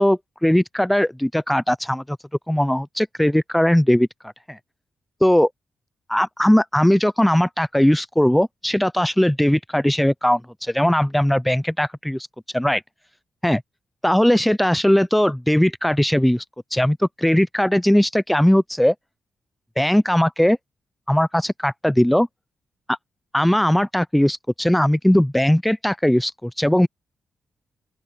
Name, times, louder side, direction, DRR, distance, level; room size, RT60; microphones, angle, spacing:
voice 1, 0.0-2.2 2.5-4.1 4.5-4.6 5.2-5.5 6.1-12.3 12.5-12.8 13.4-13.6 14.0-16.4 16.7-18.9 19.8-20.6 21.1-22.3 22.9-23.0 23.3-26.9, equal, 5° left, 0.3 m, -19 dB
open air
cardioid pair, 110°, 0 cm